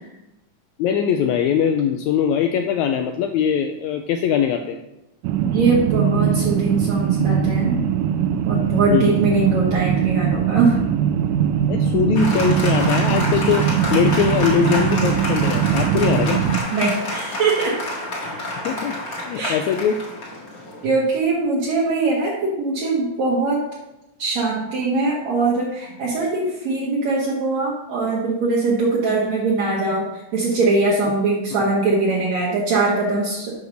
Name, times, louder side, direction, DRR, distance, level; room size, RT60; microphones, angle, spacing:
voice 1, 0.8-4.8 8.9-9.2 11.7-16.4 18.6-19.0 19.3-20.0 31.6-31.7, left 8 dB, 80° left, 6 dB, 1.7 m, -21 dB
sound 1, 5.2-16.6, right 8 dB, 90° right, 2.2 m, -21 dB
voice 2, 5.4-7.8 8.4-10.8 16.7-17.7 19.4-19.6 20.8-23.6 24.2-33.5, right 3 dB, 60° right, -5 dB, 2.5 m, -21 dB
Applause, 12.1-21.1, left 1 dB, 35° left, 1.6 m, -28 dB
8.4 x 5.0 x 6.3 m, 0.92 s
omnidirectional pair, 3.7 m